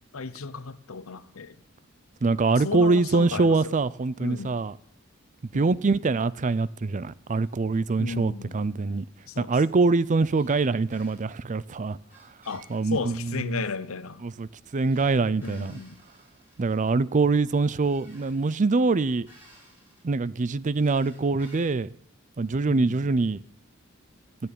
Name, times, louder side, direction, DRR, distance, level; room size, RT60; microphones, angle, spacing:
voice 1, 0.1-1.6 2.5-3.7 4.2-4.6 5.5-5.9 8.0-8.6 9.3-9.8 12.5-14.2 15.4-16.0 22.7-23.2, left 4 dB, 80° left, 0.8 m, -35 dB
voice 2, 2.2-4.7 5.5-9.1 9.4-12.0 12.7-13.6 14.2-14.5 14.7-15.8 16.6-19.3 20.0-21.9 22.4-23.4, right 3 dB, 35° right, 0.5 m, -24 dB
sound 1, 10.3-10.6 10.9-11.2 12.1-13.5 14.8-16.8 17.8-18.4 19.3-20.0 20.8-21.9, right 1 dB, 10° right, 7.5 m, -55 dB
15.5 x 7.1 x 10.0 m
head